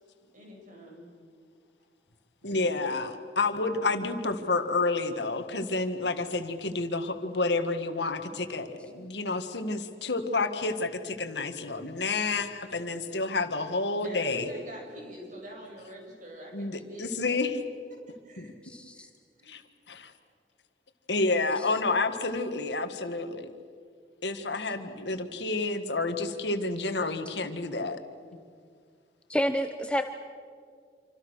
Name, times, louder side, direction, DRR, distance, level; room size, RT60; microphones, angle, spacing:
voice 1, 0.3-1.1 2.4-2.8 3.5-3.8 12.7-13.1 13.9-17.4 18.2-18.5 18.9-19.1 19.4-19.6 28.2-28.4, equal, 50° right, 0 dB, 7.6 m, -46 dB
voice 2, 2.4-14.5 16.5-17.6 18.4-18.5 19.5-19.6 19.9-20.1 21.1-23.5 24.2-28.0, left 3 dB, 75° left, 7 dB, 1.9 m, -29 dB
voice 3, 18.6-19.1 29.3-30.0, equal, 5° left, 6 dB, 0.9 m, -28 dB
27.5 x 26.0 x 6.5 m, 2.1 s
head